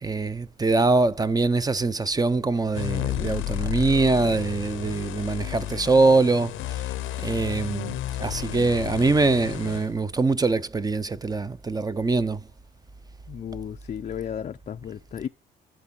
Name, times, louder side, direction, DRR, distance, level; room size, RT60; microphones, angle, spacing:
voice 1, 0.0-6.9 7.2-7.9 8.2-12.4, right 3 dB, 20° right, 0.5 m, -23 dB
sound 1, 2.7-9.9, left 14 dB, 90° left, 0.6 m, -32 dB
voice 2, 13.3-15.3, left 9 dB, 35° left, 0.4 m, -34 dB
11.0 x 3.8 x 5.8 m
cardioid pair, 90°, 20 cm